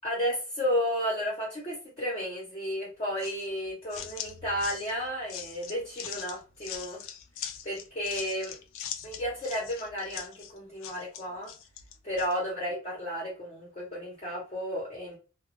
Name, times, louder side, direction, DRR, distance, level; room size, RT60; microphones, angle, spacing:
voice 1, 0.0-7.1 7.6-8.6 9.0-11.5 12.0-15.2, equal, 30° left, -5 dB, 0.8 m, -33 dB
sound 1, 3.2-12.4, left 9 dB, 65° left, 0.4 m, -42 dB
2.3 x 2.2 x 2.9 m, 0.33 s
head